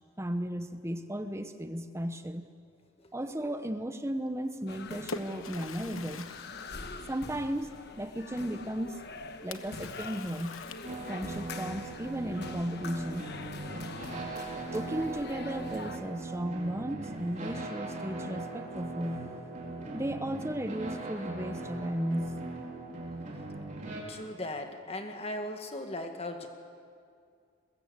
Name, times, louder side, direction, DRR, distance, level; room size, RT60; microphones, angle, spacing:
voice 1, 0.2-2.5 3.1-6.3 7.1-9.0 9.4-10.6 11.1-13.3 14.7-19.3 19.9-22.4, equal, 15° right, 8 dB, 0.8 m, -35 dB
Splash splatter, 4.5-7.7 9.5-11.4, left 4 dB, 80° left, 1.1 m, -45 dB
sound 1, 4.7-16.0, left 3 dB, 50° left, 1.2 m, -44 dB
sound 2, 10.8-24.0, right 2 dB, 35° right, 4.3 m, -39 dB
voice 2, 24.1-26.5, left 1 dB, 30° left, 5 dB, 1.8 m, -38 dB
22.5 x 21.0 x 8.2 m, 2.3 s
head